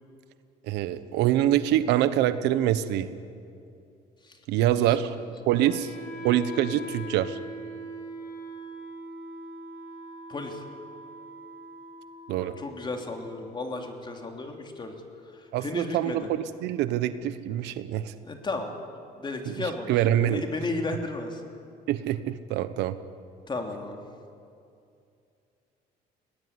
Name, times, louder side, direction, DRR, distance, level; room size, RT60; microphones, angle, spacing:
voice 1, 0.7-3.1 4.5-5.1 5.5-5.9 6.2-7.4 12.3-12.6 15.5-18.1 19.4-20.4 21.9-23.0, right 12 dB, 90° right, 13 dB, 1.0 m, -25 dB
voice 2, 4.8-5.2 5.8-5.9 10.3-10.6 12.6-14.9 15.3-16.3 18.2-21.4 23.5-24.0, left 3 dB, 25° left, 4 dB, 3.1 m, -34 dB
Wind instrument woodwind instrument, 5.5-15.5, equal, 70° left, 6.3 m, -42 dB
22.0 x 18.0 x 9.8 m, 2.5 s
cardioid pair, 110°, 17 cm